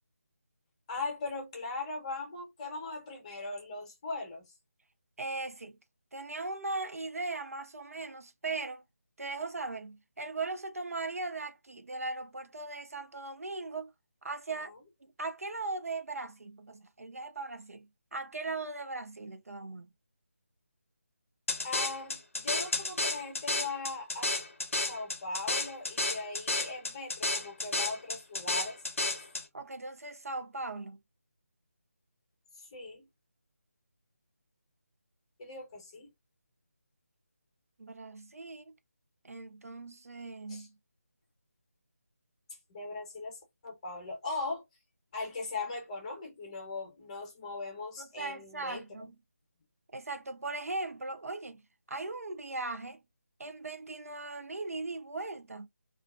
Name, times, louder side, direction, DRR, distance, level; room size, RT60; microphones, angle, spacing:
voice 1, 0.9-4.4 21.6-24.3 24.9-28.8 29.1-29.3 32.6-33.1 35.4-36.1 40.5-40.7 42.7-44.6 45.1-48.8, left 3 dB, 25° left, 0.9 m, -39 dB
voice 2, 5.2-5.8 6.1-8.8 9.2-13.9 14.2-14.7 15.0-19.9 29.5-31.0 37.8-38.7 39.2-40.7 48.0-49.2 49.9-51.6 51.9-53.0 53.4-55.7, right 3 dB, 75° right, 0.5 m, -39 dB
sound 1, 21.5-29.4, left 2 dB, 60° left, 0.6 m, -32 dB
2.4 x 2.3 x 2.4 m
figure-of-eight pair, 160°, 8 cm